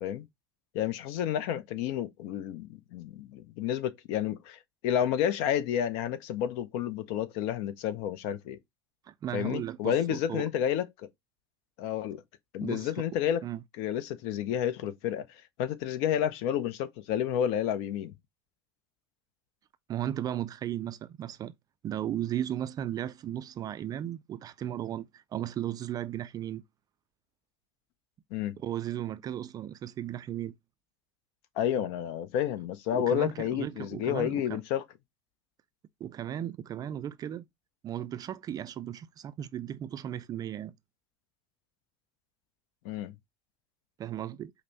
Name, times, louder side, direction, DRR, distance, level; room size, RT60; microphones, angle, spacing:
voice 1, 0.7-8.6 9.3-11.1 11.8-12.2 12.5-13.4 13.8-15.2 15.6-18.1 28.3-28.6 31.6-34.8 42.8-43.1, left 10 dB, 55° left, 0.6 m, -30 dB
voice 2, 9.1-10.5 12.6-12.9 13.4-13.6 19.9-21.5 21.8-26.6 28.6-30.5 32.9-34.6 36.0-37.5 37.8-40.7 44.0-44.5, right 11 dB, 30° right, 0.3 m, -35 dB
5.2 x 2.1 x 4.0 m
figure-of-eight pair, 80°, 13 cm